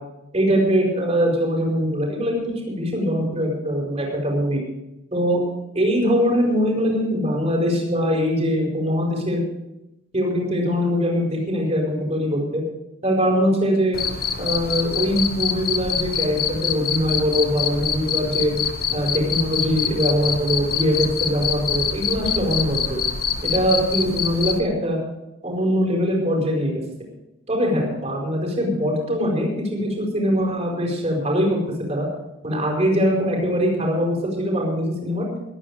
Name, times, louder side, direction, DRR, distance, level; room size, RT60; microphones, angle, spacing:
voice 1, 0.3-4.6 5.1-5.4 5.7-9.4 10.1-12.6 13.0-14.0 14.4-18.5 18.9-23.0 23.4-25.0 25.4-26.8 27.5-31.6 31.9-32.1 32.4-35.3, equal, 30° right, 0 dB, 4.8 m, -22 dB
Cricket, 13.9-24.6, left 7 dB, 45° left, 1.1 m, -25 dB
21.5 x 9.2 x 5.0 m, 0.92 s
head